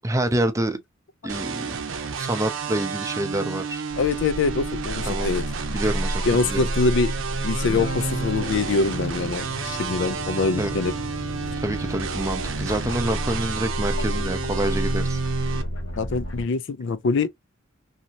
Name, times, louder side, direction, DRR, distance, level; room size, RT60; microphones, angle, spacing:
voice 1, 0.0-0.8 1.2-1.8 2.2-3.8 5.1-5.3 5.7-6.7 10.6-10.8 11.6-15.2, right 1 dB, 15° right, 0.5 m, -27 dB
sound 1, 1.3-15.6, right 5 dB, 65° right, 0.6 m, -31 dB
sound 2, 3.9-16.4, equal, 90° left, 0.9 m, -31 dB
voice 2, 4.0-5.4 6.2-7.1 7.4-10.9 16.0-17.3, left 4 dB, 65° left, 0.4 m, -24 dB
sound 3, 7.5-13.2, left 2 dB, 45° left, 0.8 m, -39 dB
2.8 x 2.6 x 2.8 m
head